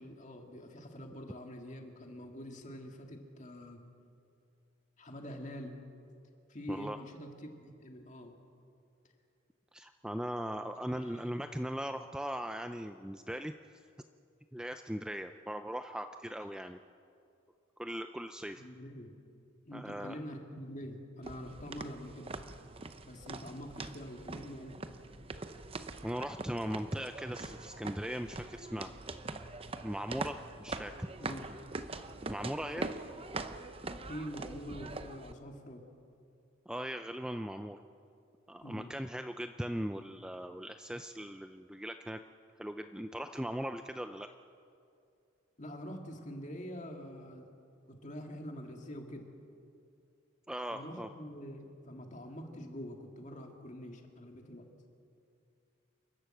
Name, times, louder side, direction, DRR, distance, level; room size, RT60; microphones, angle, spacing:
voice 1, 0.0-3.8 5.0-5.8 6.5-8.3 10.9-11.2 18.6-19.1 19.7-22.3 23.1-24.8 31.2-31.5 34.1-35.8 38.6-38.9 45.6-47.5 47.9-49.3 50.7-54.6, equal, 35° left, 3 dB, 2.1 m, -45 dB
voice 2, 9.7-13.5 14.5-16.8 17.8-18.6 19.7-20.2 26.0-28.9 29.8-30.9 32.3-32.9 36.7-37.8 38.5-42.2 42.6-44.3 50.5-51.1, equal, 5° right, 7 dB, 0.4 m, -39 dB
sound 1, 21.2-35.3, right 3 dB, 30° right, 0.7 m, -43 dB
28.0 x 12.0 x 7.8 m, 2.5 s
head